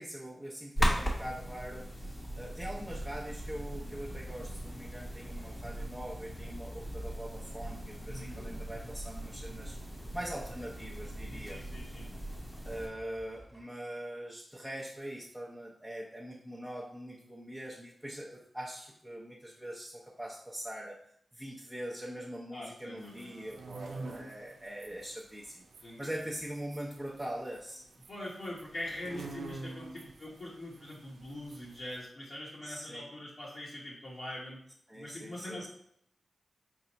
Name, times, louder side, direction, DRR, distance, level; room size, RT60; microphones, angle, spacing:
voice 1, 0.0-9.8 10.1-11.6 12.6-21.0 21.3-25.6 26.0-27.9 32.6-33.0 34.9-35.7, right 1 dB, 5° right, -5 dB, 0.7 m, -42 dB
sound 1, 0.8-12.9, equal, 20° left, 0.9 m, -38 dB
sound 2, 2.9-13.6, right 1 dB, 25° right, 1.2 m, -55 dB
voice 2, 8.1-8.4 11.3-12.1 22.5-23.4 25.8-26.1 28.1-34.6 35.0-35.7, left 1 dB, 55° left, -7 dB, 0.9 m, -43 dB
sound 3, 23.0-32.0, right 3 dB, 90° right, 0.4 m, -48 dB
4.5 x 2.0 x 4.0 m, 0.69 s
cardioid pair, 75°, 0 cm